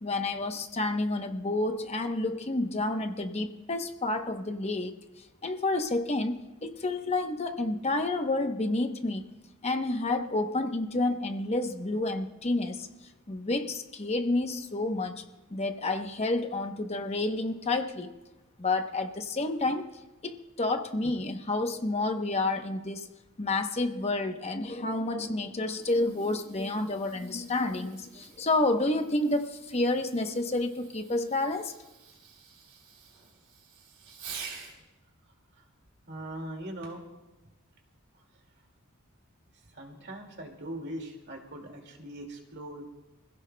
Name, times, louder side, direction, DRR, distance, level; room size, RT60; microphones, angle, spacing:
voice 1, 0.0-4.9 5.4-9.2 9.6-12.9 13.3-15.2 15.5-18.1 18.6-19.9 20.2-23.1 23.4-31.7, left 2 dB, 30° left, 5 dB, 0.8 m, -29 dB
Fireworks, 25.5-34.8 36.8-37.2 37.9-38.0, right 6 dB, 85° right, 3.4 m, -49 dB
voice 2, 36.1-37.0 39.7-42.9, right 1 dB, 50° right, 2 dB, 2.2 m, -40 dB
25.0 x 16.0 x 2.2 m, 1.0 s
head